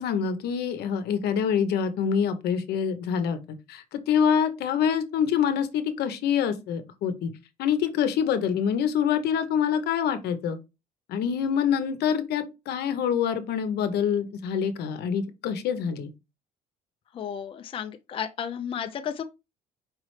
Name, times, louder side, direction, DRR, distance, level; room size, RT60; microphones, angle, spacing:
voice 1, 0.0-3.4 3.7-7.3 7.6-10.6 11.1-16.1, left 8 dB, 75° left, 0.7 m, -26 dB
voice 2, 17.1-19.2, left 8 dB, 30° left, 0.4 m, -33 dB
4.7 x 3.1 x 3.1 m
cardioid pair, 110°, 17 cm